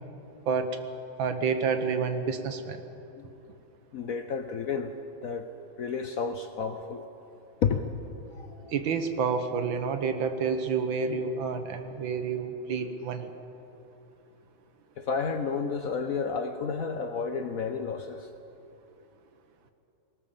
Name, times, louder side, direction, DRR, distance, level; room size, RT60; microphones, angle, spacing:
voice 1, 0.5-0.8 1.2-2.8 8.7-13.3, right 5 dB, 75° right, 8 dB, 1.9 m, -29 dB
voice 2, 3.9-4.9 5.2-5.5 5.8-7.0 7.6-7.9 8.3-8.7 15.0-18.3, left 5 dB, 60° left, 8 dB, 1.0 m, -31 dB
19.5 x 18.5 x 7.3 m, 2.9 s
omnidirectional pair, 2.2 m